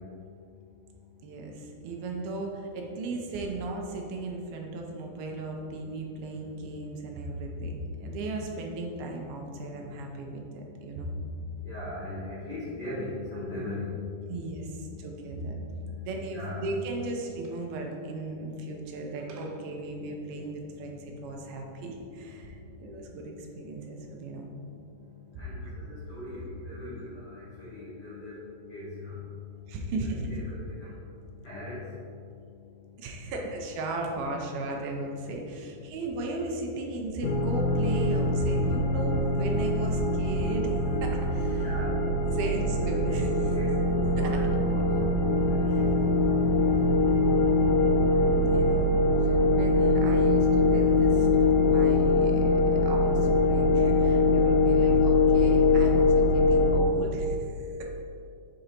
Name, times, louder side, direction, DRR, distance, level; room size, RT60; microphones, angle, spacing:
voice 1, 1.2-11.1 14.3-15.6 16.0-24.5 25.7-25.8 29.7-30.4 33.0-41.8 42.3-43.3 44.2-44.4 45.7-45.8 46.6-47.7 48.2-49.0 49.2-52.4 52.8-57.7, right 2 dB, 80° right, 1 dB, 2.4 m, -36 dB
voice 2, 11.6-17.0 17.6-17.7 21.0-21.1 25.4-28.4 28.7-29.2 30.3-30.9 31.4-31.8 41.5-42.0 42.3-42.6 43.0-45.9 46.3-46.8, left 2 dB, 70° left, -10 dB, 1.4 m, -39 dB
sound 1, 37.2-56.8, left 2 dB, 85° left, 1.9 m, -23 dB
6.6 x 3.9 x 4.3 m, 2.5 s
omnidirectional pair, 4.5 m